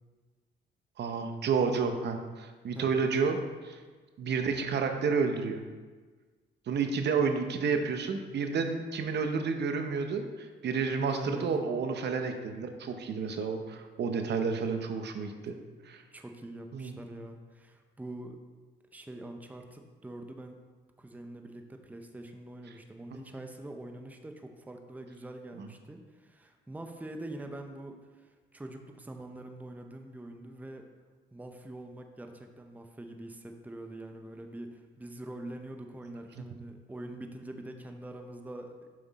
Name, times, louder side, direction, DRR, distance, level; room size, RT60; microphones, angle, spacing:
voice 1, 1.0-3.8 4.2-5.6 6.7-15.5 15.8-16.0 16.7-16.9 23.1-23.2 25.6-25.7, right 5 dB, 60° right, 6 dB, 0.8 m, -30 dB
voice 2, 11.0-11.5 16.1-18.4 18.9-20.6 21.0-30.9 31.3-38.9, right 1 dB, 10° right, 4 dB, 0.7 m, -44 dB
7.6 x 5.9 x 4.1 m, 1.4 s
cardioid pair, 90°, 20 cm